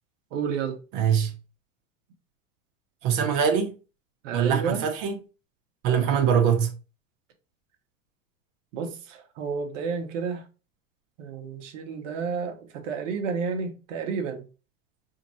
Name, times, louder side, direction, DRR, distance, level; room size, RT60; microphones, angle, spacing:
voice 1, 0.3-0.8 4.2-4.9 8.7-10.4 11.2-14.5, right 5 dB, 70° right, 1.4 m, -31 dB
voice 2, 0.9-1.3 3.0-3.7 4.3-5.2 5.8-6.7, right 7 dB, 50° right, 1.4 m, -23 dB
5.0 x 2.8 x 3.1 m
hypercardioid pair, 110°, 39 cm